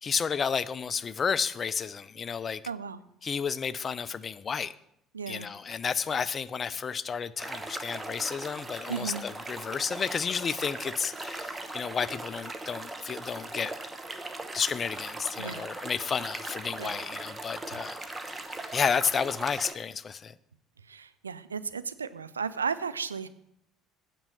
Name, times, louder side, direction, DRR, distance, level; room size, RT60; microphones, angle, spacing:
voice 1, 0.0-2.6 3.2-4.7 5.3-13.7 14.5-20.3, left 6 dB, 35° left, 16 dB, 0.4 m, -31 dB
voice 2, 2.6-3.0 5.1-5.5 8.9-9.2 15.4-15.7 16.8-17.0 17.7-17.8 20.8-23.3, right 6 dB, 80° right, 13 dB, 0.3 m, -35 dB
sound 1, 7.4-19.7, right 2 dB, 15° right, 0.9 m, -39 dB
8.9 x 5.4 x 6.2 m, 0.76 s
figure-of-eight pair, 55°, 0 cm